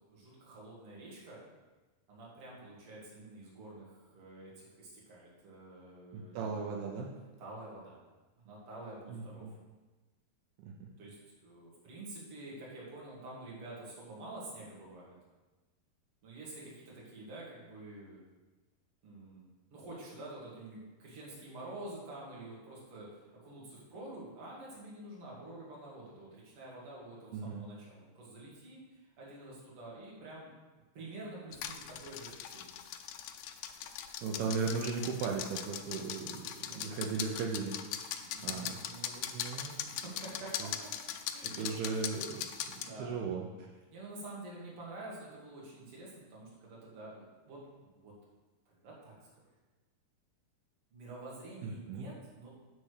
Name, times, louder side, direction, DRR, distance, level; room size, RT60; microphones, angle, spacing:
voice 1, 0.1-1.4 2.1-6.5 7.4-8.0 8.4-9.5 11.0-15.2 16.2-18.2 19.0-19.4 19.7-30.5 30.9-32.8 36.6-37.0 38.1-39.4 39.9-40.7 41.3-42.0 42.7-43.2 43.9-48.1 48.7-49.3 50.9-52.5, right 2 dB, 40° right, -5 dB, 2.6 m, -48 dB
voice 2, 6.1-7.1 9.1-9.5 10.6-10.9 27.3-27.6 34.2-36.4 36.7-37.7 38.4-38.7 39.3-39.8 40.6-40.7 41.5-42.4 43.0-43.7 51.6-52.1, right 5 dB, 80° right, 0 dB, 2.6 m, -36 dB
sound 1, 31.5-42.9, left 10 dB, 80° left, 2.0 m, -41 dB
9.6 x 4.2 x 6.5 m, 1.2 s
omnidirectional pair, 4.6 m